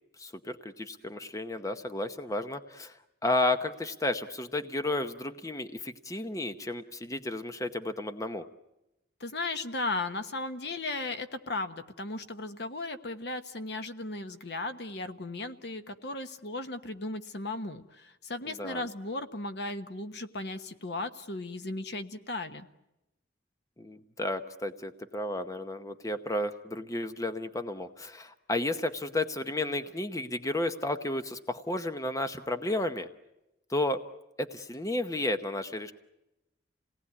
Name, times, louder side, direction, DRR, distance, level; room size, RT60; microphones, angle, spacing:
voice 1, 0.2-8.4 18.4-18.9 23.8-33.1 33.7-34.0 34.4-35.9, left 2 dB, 20° left, 8 dB, 0.9 m, -32 dB
voice 2, 9.2-22.7, left 2 dB, 60° left, 9 dB, 1.2 m, -36 dB
28.0 x 18.5 x 9.6 m, 0.93 s
head